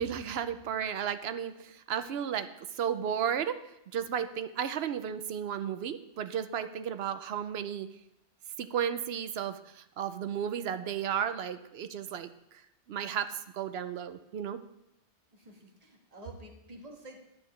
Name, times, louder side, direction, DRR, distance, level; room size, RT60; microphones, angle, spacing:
voice 1, 0.0-2.5 2.8-3.6 3.9-7.9 8.6-12.3 12.9-14.6, right 8 dB, 65° right, 11 dB, 0.8 m, -33 dB
voice 2, 15.3-17.2, right 1 dB, 35° right, 1 dB, 1.6 m, -49 dB
10.5 x 8.4 x 3.2 m, 0.85 s
omnidirectional pair, 1.2 m